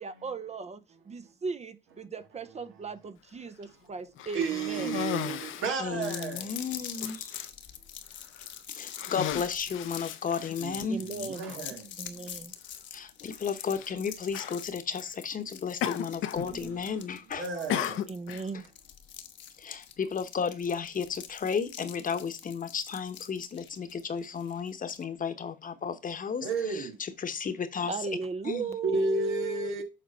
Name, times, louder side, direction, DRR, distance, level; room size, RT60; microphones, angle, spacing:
voice 1, 0.0-5.0 5.9-6.0 10.9-11.5 12.0-12.5 18.1-18.6 27.9-29.8, right 5 dB, 35° right, 0.6 m, -37 dB
Cough, 4.2-5.8 6.5-6.6 7.0-7.5 8.2-8.5 8.9-10.8 11.8-11.9 13.7-13.9 14.3-14.6 15.8-16.5 16.8-17.2 17.7-18.4, left 11 dB, 90° left, 0.8 m, -35 dB
voice 2, 4.3-6.5 10.6-12.0 16.4-16.8 17.4-18.1 26.4-27.0 28.8-29.8, right 3 dB, 85° right, 1.8 m, -32 dB
voice 3, 5.8-7.3 8.7-11.0 12.9-17.5 19.6-28.1 28.4-28.8, left 6 dB, 45° left, 1.0 m, -33 dB
sound 1, 6.0-25.0, left 9 dB, 65° left, 1.1 m, -44 dB
7.6 x 4.0 x 5.5 m
cardioid pair, 90°, 20 cm